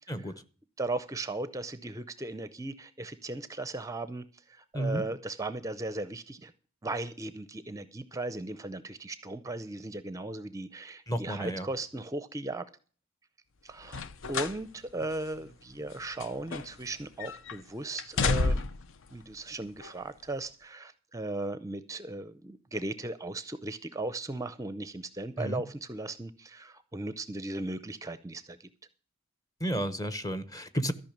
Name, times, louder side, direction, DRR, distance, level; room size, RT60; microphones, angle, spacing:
voice 1, 0.8-4.2 4.5-6.5 6.8-12.6 13.6-14.0 14.3-18.6 19.1-28.7, right 2 dB, 15° right, 0.5 m, -37 dB
voice 2, 4.7-5.0 11.1-11.7 25.4-25.6 29.6-30.9, right 1 dB, 15° left, 0.8 m, -32 dB
sound 1, 13.8-14.6 15.0-15.1 15.9-16.9 17.2-17.6 18.0-18.9 19.8-19.9, left 3 dB, 65° left, 0.6 m, -30 dB
14.0 x 5.6 x 8.6 m
head